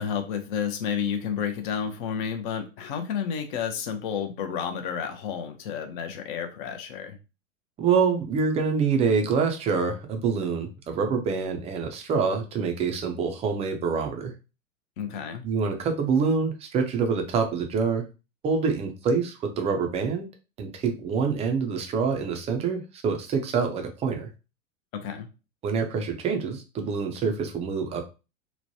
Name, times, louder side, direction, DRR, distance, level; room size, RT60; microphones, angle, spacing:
voice 1, 0.0-7.2 15.0-15.4 24.9-25.3, left 7 dB, 40° left, 7 dB, 0.6 m, -31 dB
voice 2, 7.8-14.3 15.4-18.1 18.4-20.3 20.6-24.3 25.6-28.1, right 5 dB, 15° right, 4 dB, 0.5 m, -26 dB
3.1 x 2.1 x 2.6 m, 0.29 s
figure-of-eight pair, 95°, 39 cm